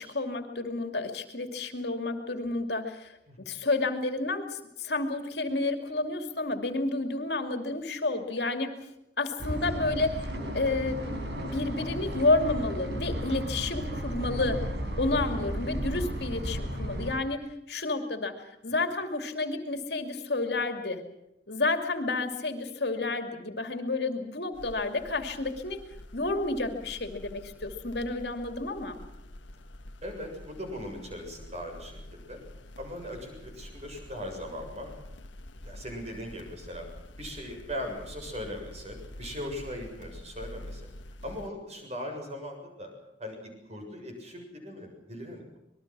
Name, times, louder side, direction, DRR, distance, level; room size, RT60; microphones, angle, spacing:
voice 1, 0.0-8.7 9.2-10.3 10.5-11.0 11.3-14.7 15.0-21.0 21.5-25.8 26.1-29.0, left 2 dB, 60° left, 6 dB, 2.6 m, -30 dB
sound 1, 9.4-17.2, equal, 70° right, 4.9 m, -34 dB
sound 2, 24.5-41.5, left 1 dB, 90° left, 1.5 m, -47 dB
voice 2, 30.0-32.4 32.8-34.9 35.6-36.8 37.2-40.8 41.2-42.9 43.2-45.6, equal, 35° right, 3 dB, 7.1 m, -39 dB
26.0 x 21.0 x 6.2 m, 0.85 s
head